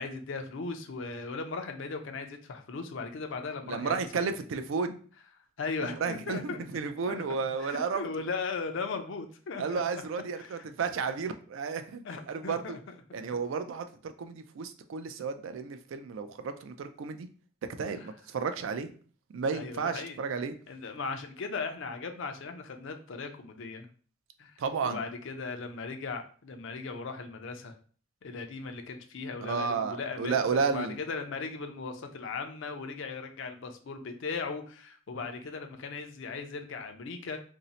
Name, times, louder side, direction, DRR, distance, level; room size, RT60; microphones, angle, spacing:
voice 1, 0.0-4.3 5.6-6.7 7.1-9.8 10.4-10.6 12.0-12.9 18.0-18.1 19.5-20.2 20.7-23.9 24.4-24.5 24.8-27.8 28.2-37.4, left 4 dB, 60° left, 6 dB, 0.5 m, -38 dB
voice 2, 3.7-5.0 5.8-8.0 9.6-12.8 13.1-17.3 17.8-18.9 19.3-20.5 24.6-25.0 29.4-31.0, right 5 dB, 65° right, 9 dB, 0.3 m, -32 dB
2.6 x 2.0 x 3.9 m, 0.43 s
head